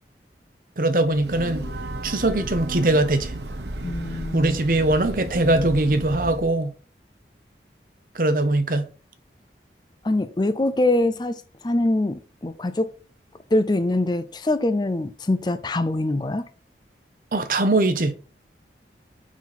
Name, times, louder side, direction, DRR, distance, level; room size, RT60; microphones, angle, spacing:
voice 1, 0.8-1.6 2.0-3.3 4.3-6.7 8.1-8.9 17.3-18.2, right 2 dB, 50° right, 0.9 m, -21 dB
Breathing / Train, 1.0-6.6, right 1 dB, 80° right, 1.1 m, -33 dB
voice 2, 3.8-4.6 10.0-12.9 13.5-16.5, left 2 dB, 25° left, 0.5 m, -24 dB
6.2 x 5.9 x 4.1 m
head